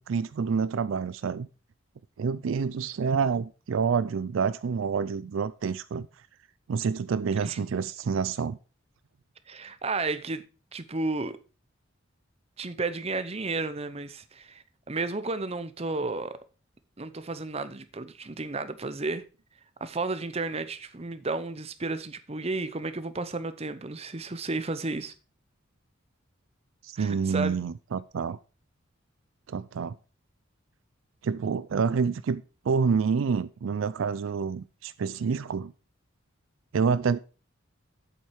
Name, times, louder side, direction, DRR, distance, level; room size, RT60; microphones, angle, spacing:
voice 1, 0.1-1.5 2.2-6.1 6.7-8.6 26.8-28.4 29.5-29.9 31.2-35.7 36.7-37.2, right 5 dB, 70° right, 0.4 m, -28 dB
voice 2, 9.5-10.4 10.7-11.4 12.6-16.4 17.0-19.2 19.8-25.1 27.0-27.5, right 3 dB, 30° right, 0.7 m, -32 dB
8.1 x 7.4 x 4.6 m
head